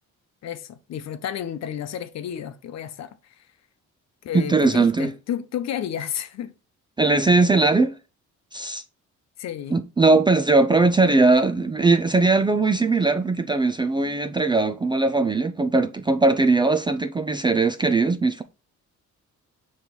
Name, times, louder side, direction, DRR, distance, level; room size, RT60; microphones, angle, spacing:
voice 1, 0.4-3.5 4.2-6.5 9.4-9.8, left 10 dB, 60° left, 0.8 m, -32 dB
voice 2, 4.3-5.1 7.0-7.9 8.5-8.8 9.7-18.4, right 3 dB, 15° right, 0.3 m, -20 dB
5.9 x 3.2 x 5.2 m
cardioid pair, 140°, 30 cm